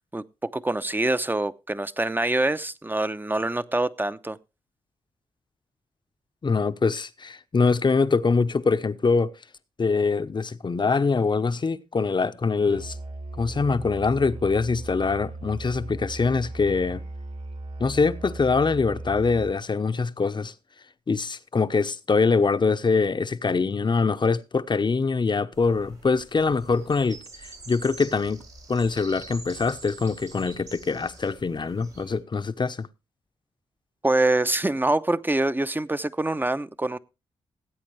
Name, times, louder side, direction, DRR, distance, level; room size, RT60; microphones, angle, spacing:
voice 1, 0.5-4.4 34.0-37.0, right 2 dB, 15° right, 0.9 m, -25 dB
voice 2, 6.4-9.3 9.8-13.0 13.4-17.0 17.8-20.5 21.1-28.4 28.7-32.9, left 4 dB, 40° left, 0.9 m, -24 dB
Musical instrument, 12.7-19.7, right 2 dB, 65° right, 4.1 m, -37 dB
sound 1, 25.5-32.2, right 3 dB, 90° right, 6.0 m, -46 dB
18.5 x 8.5 x 3.3 m
supercardioid pair, 45°, 12 cm